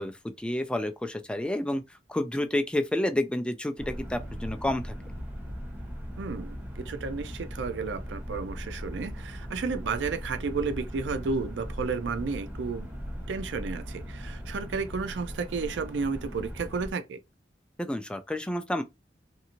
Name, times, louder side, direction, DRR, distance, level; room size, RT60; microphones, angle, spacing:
voice 1, 0.0-1.8 2.1-4.9 17.8-18.8, left 1 dB, 5° left, 0.3 m, -29 dB
sound 1, 3.8-16.9, equal, 10° right, 0.7 m, -39 dB
voice 2, 6.2-12.9 13.3-17.2, right 4 dB, 85° right, 0.4 m, -32 dB
2.7 x 2.5 x 2.8 m
head